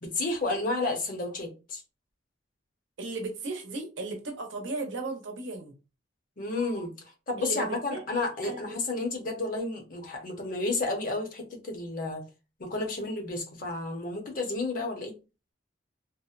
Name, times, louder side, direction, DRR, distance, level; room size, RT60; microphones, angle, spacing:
voice 1, 0.0-1.8 6.4-6.9 7.3-12.2 12.6-15.1, left 2 dB, 45° left, 3 dB, 0.7 m, -31 dB
voice 2, 3.0-5.7 7.4-8.0 8.4-8.8 13.0-13.1, right 3 dB, 85° right, 3 dB, 0.7 m, -36 dB
2.7 x 2.0 x 2.4 m, 0.30 s
head